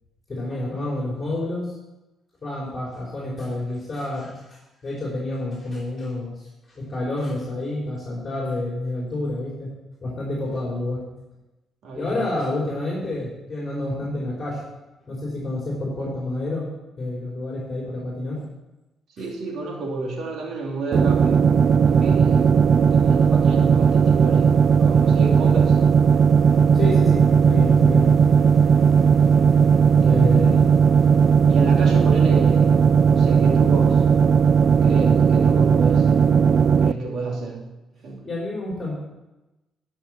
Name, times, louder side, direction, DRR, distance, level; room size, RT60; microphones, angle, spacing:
voice 1, 0.3-1.7 2.4-9.7 10.0-11.0 11.9-14.6 15.1-16.6 17.0-18.4 26.7-28.1 30.0-30.6 38.2-38.9, left 2 dB, 30° left, -4 dB, 3.3 m, -29 dB
voice 2, 11.8-12.2 12.5-12.7 19.2-21.4 21.8-25.8 30.0-30.8 31.5-32.7 33.1-34.0 34.8-36.1 36.8-37.6 38.0-38.2, right 3 dB, 70° right, -1 dB, 2.6 m, -30 dB
sound 1, 20.9-36.9, right 6 dB, 50° right, 0.4 m, -16 dB
11.5 x 5.7 x 6.1 m, 1.0 s
cardioid pair, 90°, 0 cm